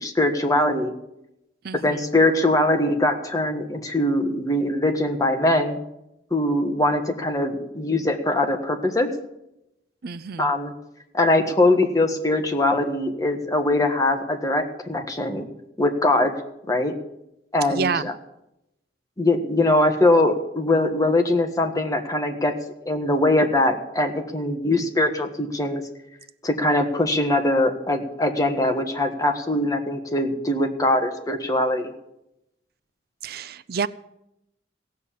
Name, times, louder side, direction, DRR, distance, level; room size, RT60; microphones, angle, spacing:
voice 1, 0.0-0.9 1.7-5.8 6.3-9.1 10.4-10.7 11.1-15.5 15.8-16.3 16.7-16.9 17.5-18.1 19.2-22.5 22.8-25.8 26.4-31.9, left 1 dB, 20° left, 4 dB, 1.5 m, -22 dB
voice 2, 1.6-2.1 10.0-10.5 17.7-18.1 33.2-33.9, right 5 dB, 60° right, 16 dB, 0.5 m, -28 dB
16.5 x 7.5 x 8.5 m, 0.85 s
head